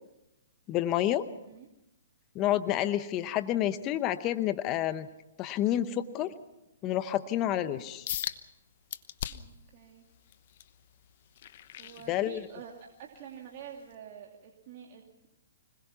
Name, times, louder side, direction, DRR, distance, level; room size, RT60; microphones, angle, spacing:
voice 1, 0.7-1.3 2.3-5.1 5.4-6.3 6.8-8.1 12.1-12.4, left 12 dB, 25° left, 12 dB, 0.8 m, -29 dB
sound 1, 8.1-8.4 8.9-9.6 10.1-12.7 13.1-13.4 13.9-14.0, left 11 dB, 50° left, 1.0 m, -38 dB
voice 2, 9.3-10.0 11.8-12.7 13.0-15.3, right 9 dB, 40° right, 0 dB, 2.6 m, -48 dB
26.0 x 21.0 x 5.9 m, 0.94 s
hypercardioid pair, 145°, 0 cm